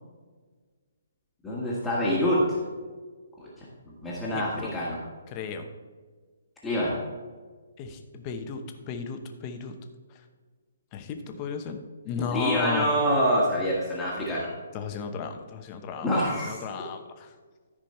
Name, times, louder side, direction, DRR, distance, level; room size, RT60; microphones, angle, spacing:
voice 1, 1.4-2.6 3.4-5.0 6.6-7.0 12.3-14.5 16.0-16.6, equal, 5° left, -7 dB, 1.6 m, -26 dB
voice 2, 4.3-4.7 5.3-5.7 7.8-9.7 10.9-12.9 14.7-17.3, left 6 dB, 25° left, 6 dB, 0.9 m, -34 dB
14.0 x 5.1 x 4.3 m, 1.5 s
hypercardioid pair, 160°, 0 cm